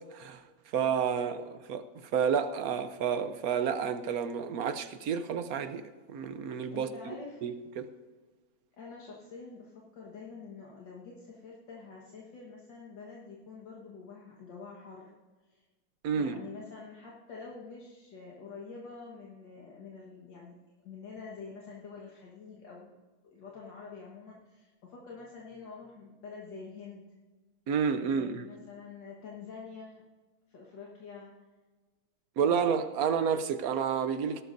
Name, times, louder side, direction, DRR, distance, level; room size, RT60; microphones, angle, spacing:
voice 1, 0.7-1.4 1.7-1.8 2.1-5.8 6.1-7.9 16.0-16.4 27.7-28.5 32.4-34.4, right 7 dB, 65° right, 10 dB, 0.9 m, -30 dB
voice 2, 6.7-7.6 8.7-15.1 15.5-15.6 16.1-22.9 23.2-27.1 28.0-30.0 30.5-31.3 32.4-33.1, left 4 dB, 65° left, -3 dB, 2.1 m, -47 dB
18.0 x 12.5 x 2.6 m, 1.3 s
omnidirectional pair, 2.2 m